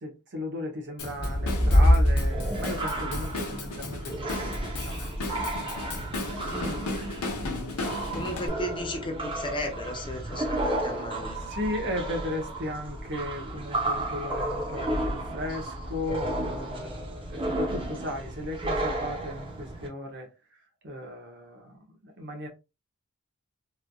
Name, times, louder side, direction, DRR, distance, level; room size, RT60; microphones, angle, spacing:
voice 1, 0.0-5.4 11.4-20.3 20.8-22.5, left 1 dB, 55° right, 0.8 m, -36 dB
Drum kit / Drum, 1.0-8.5, left 2 dB, 80° left, 0.8 m, -36 dB
sound 1, 1.1-19.9, equal, 25° right, 0.8 m, -29 dB
voice 2, 6.5-6.9 8.1-11.4, left 1 dB, 20° left, 0.5 m, -35 dB
3.1 x 2.5 x 2.3 m
head